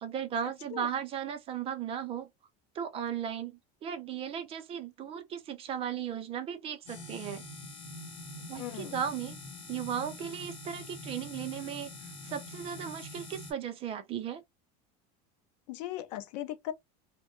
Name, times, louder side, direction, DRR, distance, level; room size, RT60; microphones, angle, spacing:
voice 1, 0.0-2.3 2.7-7.4 8.5-9.4 9.7-11.9 12.2-14.4, right 8 dB, 30° right, 0.4 m, -36 dB
sound 1, 6.9-13.5, left 2 dB, 30° left, 0.9 m, -45 dB
voice 2, 8.6-9.0 15.7-16.7, left 13 dB, 85° left, 0.5 m, -38 dB
2.1 x 2.0 x 2.9 m
cardioid pair, 155°, 21 cm